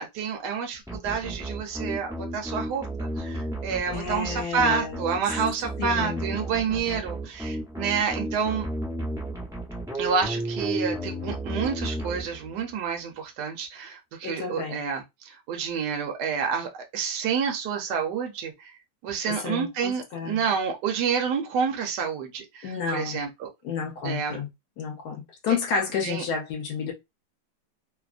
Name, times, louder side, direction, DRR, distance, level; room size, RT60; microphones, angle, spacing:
voice 1, 0.0-8.7 10.0-18.7 19.0-23.5 24.0-24.4 26.0-26.2, right 6 dB, 65° right, 1.2 m, -29 dB
sound 1, 0.9-12.7, right 1 dB, 5° right, 0.4 m, -33 dB
voice 2, 3.9-5.0 5.8-6.2 14.2-14.8 19.2-20.4 22.6-23.2 23.6-24.5 24.8-26.9, left 6 dB, 65° left, 1.1 m, -31 dB
3.2 x 2.0 x 2.4 m
omnidirectional pair, 2.1 m